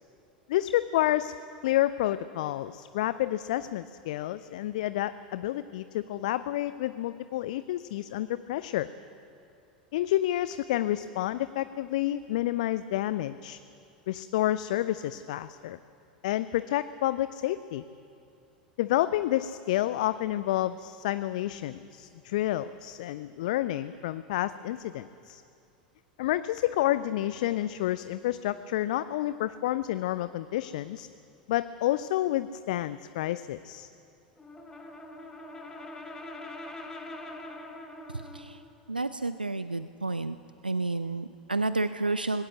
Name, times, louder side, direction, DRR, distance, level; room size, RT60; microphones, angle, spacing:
voice 1, 0.5-1.3 1.6-8.9 9.9-13.6 14.1-15.8 16.2-17.8 18.8-25.4 26.2-31.1 31.5-33.9, left 14 dB, 55° left, 15 dB, 0.5 m, -29 dB
Brass instrument, 34.4-38.5, left 2 dB, 15° left, 2.4 m, -43 dB
voice 2, 38.9-40.4 40.6-42.4, right 2 dB, 85° right, 12 dB, 0.5 m, -30 dB
19.5 x 17.0 x 7.9 m, 2.6 s
figure-of-eight pair, 85°, 5 cm